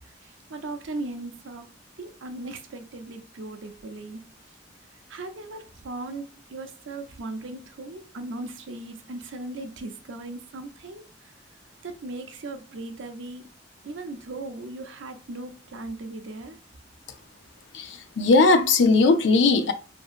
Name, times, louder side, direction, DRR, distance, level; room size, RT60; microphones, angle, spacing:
voice 1, 0.2-1.7 2.0-4.2 5.1-11.1 11.8-13.5 13.8-16.6, right 2 dB, 85° right, 0.5 m, -38 dB
voice 2, 17.7-19.7, left 3 dB, 70° left, 0.4 m, -19 dB
2.8 x 2.6 x 2.4 m
head